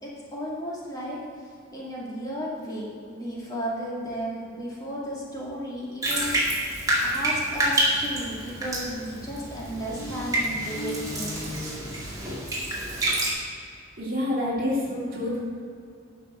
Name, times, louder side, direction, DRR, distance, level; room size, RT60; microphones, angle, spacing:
voice 1, 0.0-1.2 1.7-6.4 7.0-11.5, equal, 20° left, -6 dB, 2.2 m, -34 dB
Bathtub (filling or washing), 6.0-13.3, right 1 dB, 20° right, 2.2 m, -28 dB
sound 1, 7.9-12.7, left 1 dB, 75° left, 1.5 m, -40 dB
voice 2, 14.0-15.4, left 1 dB, 45° right, -6 dB, 2.8 m, -27 dB
11.0 x 5.7 x 6.2 m, 2.3 s
head